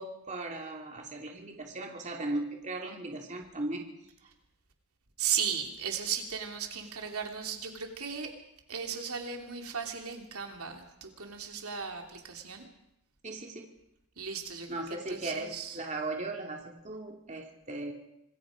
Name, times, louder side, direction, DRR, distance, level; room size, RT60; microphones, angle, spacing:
voice 1, 0.0-3.9 13.2-13.7 14.7-17.9, right 2 dB, 35° right, 1 dB, 2.7 m, -37 dB
voice 2, 5.2-8.3 8.7-12.7 14.2-15.8, right 7 dB, 75° right, 3 dB, 3.0 m, -36 dB
26.5 x 20.5 x 5.1 m, 0.85 s
head